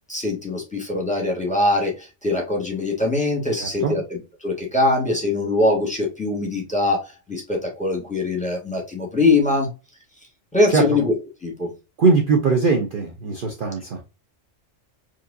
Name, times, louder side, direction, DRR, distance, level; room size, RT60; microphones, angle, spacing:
voice 1, 0.1-9.7 10.5-11.1 11.4-11.7, left 2 dB, 5° left, -1 dB, 1.6 m, -22 dB
voice 2, 3.6-4.0 10.7-11.0 12.0-14.0, right 4 dB, 50° right, 2 dB, 0.8 m, -20 dB
4.6 x 3.1 x 2.6 m, 0.27 s
omnidirectional pair, 1.3 m